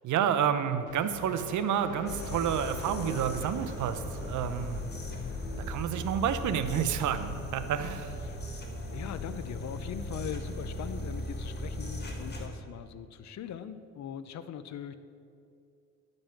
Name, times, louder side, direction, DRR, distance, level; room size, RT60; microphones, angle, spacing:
voice 1, 0.0-4.8 5.6-8.1, right 8 dB, 75° right, 10 dB, 0.7 m, -30 dB
sound 1, 0.9-4.1, left 6 dB, 80° left, 1.1 m, -45 dB
sound 2, 2.1-12.5, left 1 dB, 35° left, 1.6 m, -38 dB
voice 2, 8.2-14.9, left 8 dB, 65° left, 12 dB, 0.6 m, -41 dB
10.5 x 5.3 x 7.2 m, 2.5 s
cardioid pair, 90°, 30 cm